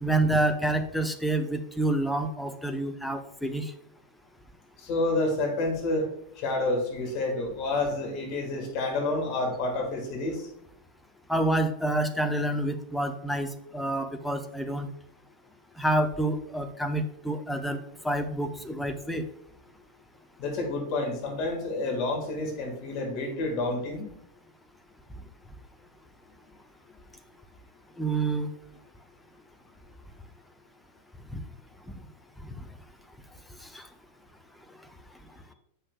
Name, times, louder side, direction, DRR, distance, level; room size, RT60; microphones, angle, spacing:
voice 1, 0.0-3.7 11.3-14.9 15.8-17.8 18.0-19.2 28.0-28.5 31.3-31.4 32.4-32.6 33.6-33.9, right 1 dB, 5° left, 6 dB, 0.6 m, -28 dB
voice 2, 4.8-6.1 6.4-10.4 20.4-24.1, left 2 dB, 40° left, 1 dB, 1.7 m, -29 dB
8.0 x 5.5 x 2.3 m, 0.76 s
figure-of-eight pair, 90°, 0 cm